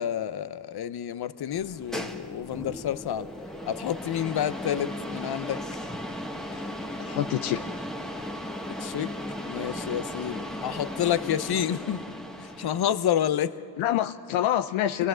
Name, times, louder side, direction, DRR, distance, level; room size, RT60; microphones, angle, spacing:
voice 1, 0.0-3.3 3.7-5.6 8.8-9.1 9.4-12.0 12.4-13.6, left 10 dB, 55° left, 0.8 m, -29 dB
sound 1, 1.5-13.1, equal, ahead, 1.5 m, -36 dB
voice 2, 7.0-7.6 13.8-15.1, left 12 dB, 80° left, 0.6 m, -26 dB
24.0 x 18.0 x 6.3 m
supercardioid pair, 50°, 46 cm